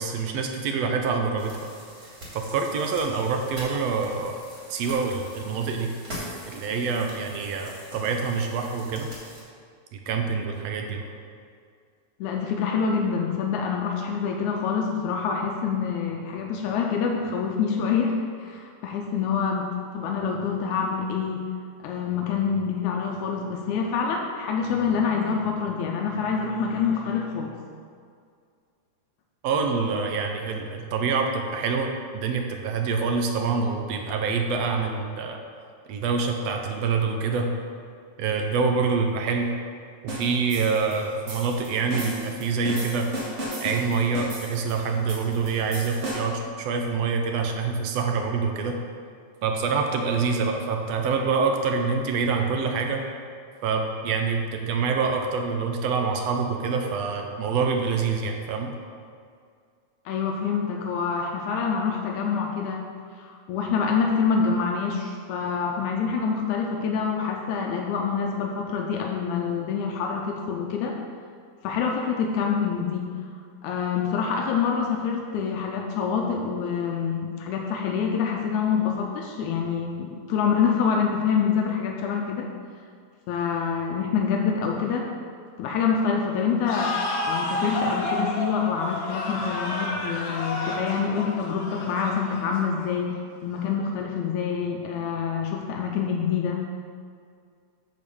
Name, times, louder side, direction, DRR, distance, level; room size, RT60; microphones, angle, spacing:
voice 1, 0.0-1.6 2.3-4.3 4.7-5.9 6.5-9.1 9.9-11.0 29.4-35.4 35.9-37.5 38.2-39.6 40.0-43.1 43.6-48.8 49.4-53.0 53.6-58.7, right 5 dB, 75° right, 3 dB, 1.7 m, -26 dB
sound 1, 1.4-9.4, equal, 25° right, 2.5 m, -43 dB
voice 2, 12.2-21.4 21.8-27.5 60.1-62.9 63.2-71.0 71.6-73.1 73.6-82.5 83.3-85.1 85.6-87.0 87.3-93.2 93.4-96.6, left 6 dB, 85° left, 1 dB, 2.0 m, -26 dB
sound 2, 40.1-46.5, right 1 dB, 45° right, 0.9 m, -35 dB
sound 3, 86.7-93.1, left 1 dB, 60° left, 2.0 m, -30 dB
8.4 x 4.5 x 6.9 m, 2.2 s
omnidirectional pair, 3.4 m